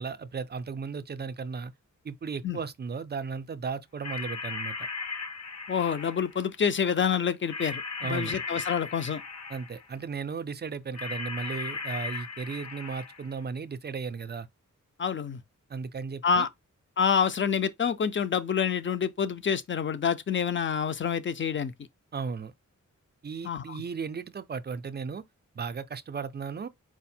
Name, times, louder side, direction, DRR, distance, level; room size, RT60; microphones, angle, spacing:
voice 1, 0.0-1.7 2.0-4.9 8.0-8.3 9.5-14.5 15.7-16.5 22.1-22.5 23.2-25.2 25.6-26.7, right 5 dB, 35° right, 0.4 m, -35 dB
sound 1, 4.0-6.4 7.5-9.9 10.9-13.4, left 4 dB, 60° left, 0.8 m, -37 dB
voice 2, 5.7-9.2 15.0-15.4 16.2-16.5 17.0-21.7 23.4-23.8, left 7 dB, 40° left, 0.4 m, -27 dB
4.6 x 2.1 x 4.2 m
wide cardioid pair, 130°, 31 cm